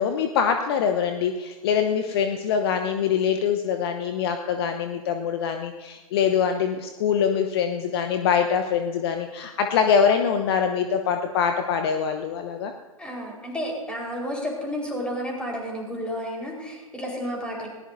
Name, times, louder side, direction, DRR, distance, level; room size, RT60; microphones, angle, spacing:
voice 1, 0.0-12.7, left 7 dB, 45° left, 6 dB, 1.0 m, -24 dB
voice 2, 13.0-17.7, equal, 5° left, -1 dB, 4.5 m, -31 dB
20.5 x 18.5 x 2.7 m, 1.3 s
figure-of-eight pair, 115°, 18 cm